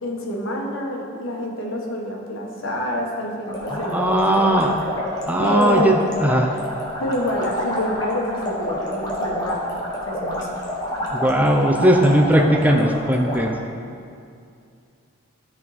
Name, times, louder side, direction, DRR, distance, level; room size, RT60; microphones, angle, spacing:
voice 1, 0.0-4.5 5.4-6.0 7.0-9.7 10.0-10.6, left 1 dB, 70° left, -1 dB, 1.3 m, -27 dB
sound 1, 3.4-13.4, left 1 dB, 20° left, 1.3 m, -28 dB
voice 2, 3.7-4.7 5.3-6.5 11.1-13.5, right 1 dB, 10° right, 2 dB, 0.5 m, -18 dB
13.0 x 4.4 x 4.2 m, 2.3 s
head